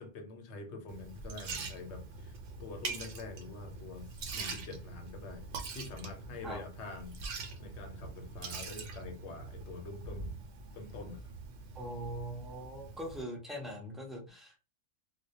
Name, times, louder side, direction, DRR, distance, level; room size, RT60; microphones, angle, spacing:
voice 1, 0.0-5.5 5.7-7.2 7.6-10.3 10.7-11.3, left 3 dB, 80° left, 0.9 m, -46 dB
Liquid, 0.9-13.2, right 4 dB, 85° right, 0.9 m, -44 dB
voice 2, 11.7-14.6, right 1 dB, ahead, 0.4 m, -41 dB
2.2 x 2.0 x 2.8 m
omnidirectional pair, 1.2 m